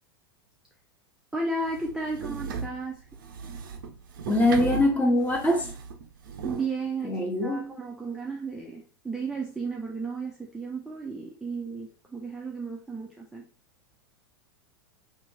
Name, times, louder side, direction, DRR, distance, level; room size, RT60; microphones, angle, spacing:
voice 1, 1.3-3.1 6.4-13.4, right 3 dB, 5° right, 0.5 m, -34 dB
sound 1, 1.7-6.7, right 6 dB, 55° right, 0.5 m, -37 dB
voice 2, 4.3-5.7 7.0-7.8, left 1 dB, 10° left, 1.0 m, -23 dB
2.9 x 2.6 x 3.8 m
figure-of-eight pair, 90°, 13 cm